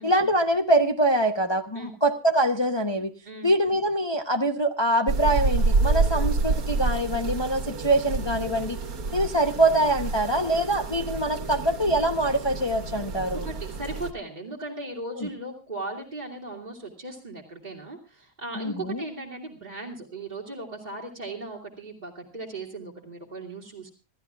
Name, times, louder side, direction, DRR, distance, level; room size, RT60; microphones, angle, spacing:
voice 1, 0.0-3.1 3.4-8.8 9.1-13.5 15.2-15.3 18.6-19.0, right 1 dB, 25° left, 5 dB, 0.8 m, -24 dB
sound 1, 5.1-14.1, right 3 dB, 80° right, 1.8 m, -28 dB
voice 2, 13.3-23.9, right 2 dB, 30° right, -3 dB, 2.3 m, -37 dB
27.0 x 13.5 x 2.4 m, 0.32 s
omnidirectional pair, 1.5 m